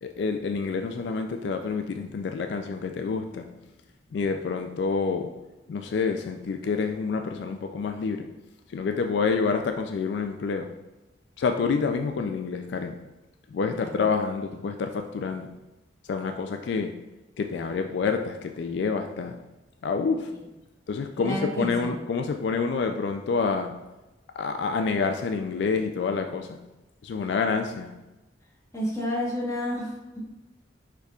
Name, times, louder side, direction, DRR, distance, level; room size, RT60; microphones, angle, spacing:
voice 1, 0.0-3.5 4.1-5.4 5.7-8.4 8.7-10.8 11.4-13.0 13.5-15.6 16.1-17.0 17.4-19.4 19.8-20.4 20.9-23.9 24.4-26.6 27.0-28.0, left 5 dB, 70° left, 0.3 m, -28 dB
voice 2, 13.7-14.1 20.3-20.4 21.2-21.9 28.7-30.2, equal, 15° left, 1.1 m, -31 dB
4.9 x 4.5 x 2.3 m
head